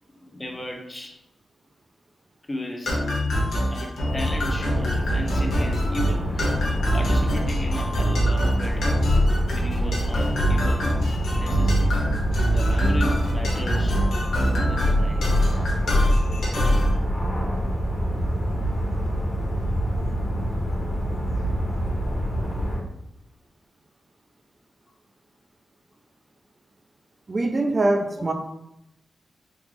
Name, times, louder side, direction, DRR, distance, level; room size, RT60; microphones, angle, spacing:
voice 1, 0.2-1.2 2.5-3.0 3.5-6.7 6.9-9.1 9.5-10.9 11.3-12.0 12.5-14.0 14.4-15.4 28.2-28.3, left 1 dB, 20° left, 2 dB, 0.5 m, -35 dB
sound 1, 2.9-16.9, equal, 90° left, 0.9 m, -24 dB
sound 2, 4.0-22.8, equal, 35° left, 1.0 m, -26 dB
voice 2, 27.3-28.3, right 2 dB, 35° right, 3 dB, 0.4 m, -23 dB
3.6 x 2.4 x 3.2 m, 0.83 s
wide cardioid pair, 95°, 0 cm